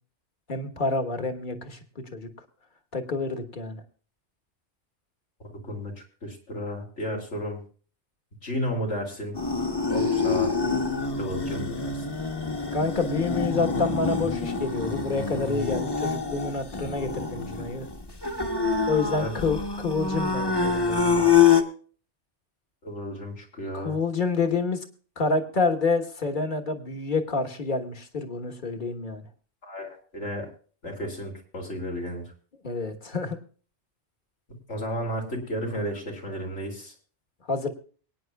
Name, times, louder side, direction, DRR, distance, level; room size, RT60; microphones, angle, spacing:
voice 1, 0.5-2.3 2.9-3.8 12.7-17.9 18.9-21.3 23.7-24.8 25.2-29.2 32.6-33.4 37.5-37.7, left 4 dB, 45° left, 5 dB, 1.4 m, -28 dB
voice 2, 5.4-5.9 6.2-7.6 8.4-9.3 9.9-10.5 11.2-11.9 19.2-19.3 22.8-24.0 29.6-30.5 30.8-32.2 34.5-36.9, equal, 90° left, 0 dB, 3.1 m, -33 dB
sound 1, 9.3-21.6, left 5 dB, 20° left, 1.1 m, -26 dB
23.5 x 9.5 x 2.3 m, 0.41 s
omnidirectional pair, 1.2 m